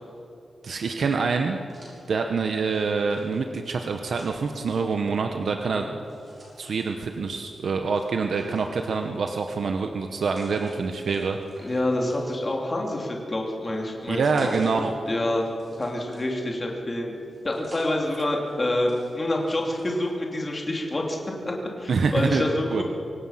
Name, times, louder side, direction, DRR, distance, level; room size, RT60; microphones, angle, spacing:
voice 1, 0.6-1.6 2.1-5.9 6.6-11.7 14.1-14.9 21.9-22.4 22.7-22.8, right 4 dB, 60° right, 4 dB, 1.0 m, -26 dB
sound 1, 1.5-4.9 6.0-7.1 7.9-9.2 9.9-10.7 11.0-12.6 13.2-14.7 15.0-16.6 17.1-17.9 18.4-20.1, right 1 dB, 35° right, 6.7 m, -52 dB
voice 2, 11.6-15.5 15.8-17.1 17.4-21.2 21.4-22.8, left 1 dB, 25° left, 0 dB, 3.0 m, -27 dB
24.5 x 18.0 x 5.8 m, 2.7 s
wide cardioid pair, 175°, 0 cm